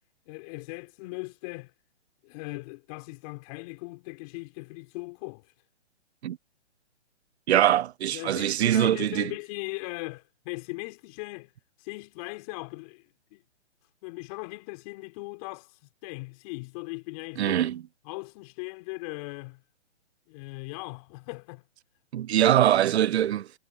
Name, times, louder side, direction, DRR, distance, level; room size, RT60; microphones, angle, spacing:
voice 1, 0.3-1.7 2.2-5.5 8.1-11.5 11.8-13.4 14.0-17.6 18.1-19.6 20.3-21.6, left 27 dB, 30° left, 3.5 m, -39 dB
voice 2, 7.5-9.3 17.4-17.8 22.1-23.5, right 11 dB, 65° right, 0.5 m, -23 dB
hypercardioid pair, 145°, 35 cm